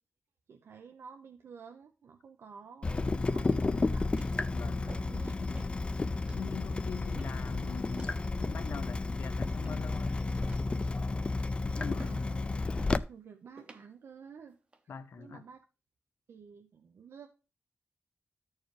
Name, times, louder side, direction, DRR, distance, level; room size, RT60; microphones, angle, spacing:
voice 1, 0.5-4.2 5.0-5.3 5.9-6.0 12.0-12.5 13.1-14.6 15.2-15.6 16.3-17.3, right 6 dB, 85° right, 0.7 m, -51 dB
Water tap faucet / Drip, 2.8-13.0, left 3 dB, 25° left, 0.3 m, -32 dB
sound 1, 3.4-3.8 4.2-4.4 4.9-5.2 5.5-5.8 6.3-6.5 7.1-7.5 8.0-8.2 8.8-9.2 9.6-10.0 10.4-10.8 11.2-11.5 12.0-12.3 12.8-13.0 13.6-13.9 14.5-14.8, right 2 dB, 25° right, 0.8 m, -51 dB
voice 2, 4.5-5.0 5.4-5.6 6.3-10.2 11.6-12.2 14.9-15.4, left 6 dB, 75° left, 0.6 m, -43 dB
13.5 x 4.6 x 3.2 m
wide cardioid pair, 165°, 4 cm